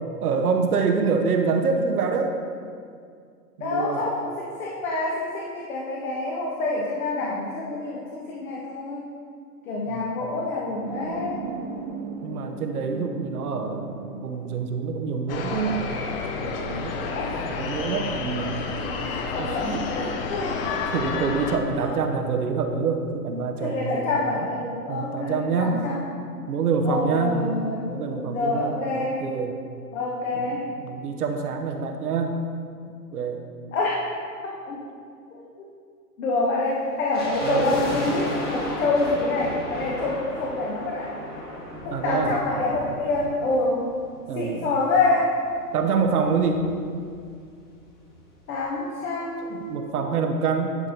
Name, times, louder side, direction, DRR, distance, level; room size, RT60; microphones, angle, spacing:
voice 1, 0.2-2.4 3.6-4.1 9.9-10.1 12.2-15.9 16.4-16.9 17.4-18.7 19.4-19.8 20.6-24.5 24.9-25.8 26.5-27.4 27.8-29.6 30.3-30.6 30.8-32.4 33.1-33.4 37.4-37.7 41.9-42.3 44.3-44.7 45.7-46.7 49.5-50.8, right 5 dB, 65° right, 4 dB, 1.0 m, -26 dB
voice 2, 3.6-9.1 9.7-11.4 17.1-17.4 18.5-20.6 21.8-21.9 23.6-26.1 26.8-27.9 28.3-29.2 29.9-30.7 33.7-34.0 34.4-34.8 36.2-41.1 41.8-43.9 44.3-45.4 48.5-49.9, left 2 dB, 55° left, -4 dB, 1.3 m, -27 dB
sound 1, 10.9-15.9, right 4 dB, 30° right, 0.4 m, -37 dB
sound 2, 15.3-21.6, left 4 dB, 35° left, 0.7 m, -30 dB
sound 3, 37.1-44.4 44.7-44.8 45.4-47.3 47.5-47.6 47.8-48.1 48.6-48.7, left 1 dB, 20° left, 1.4 m, -35 dB
11.0 x 4.2 x 4.0 m, 2.3 s
figure-of-eight pair, 115°, 48 cm